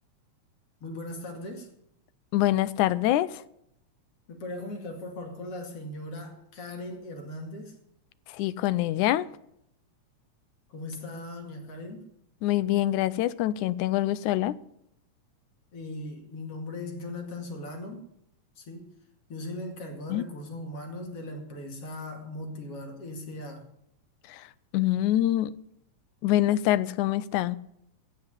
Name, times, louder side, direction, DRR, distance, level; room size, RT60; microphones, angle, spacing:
voice 1, 0.8-1.7 4.3-7.8 10.7-12.1 15.7-18.0 18.6-18.9 19.3-23.7, left 1 dB, 50° left, 3 dB, 3.1 m, -39 dB
voice 2, 2.3-3.4 8.3-9.3 12.4-14.6 20.1-20.2 24.3-24.4 24.7-25.5 26.2-27.6, left 14 dB, 85° left, 17 dB, 2.1 m, -25 dB
16.5 x 5.9 x 9.8 m, 0.76 s
omnidirectional pair, 3.4 m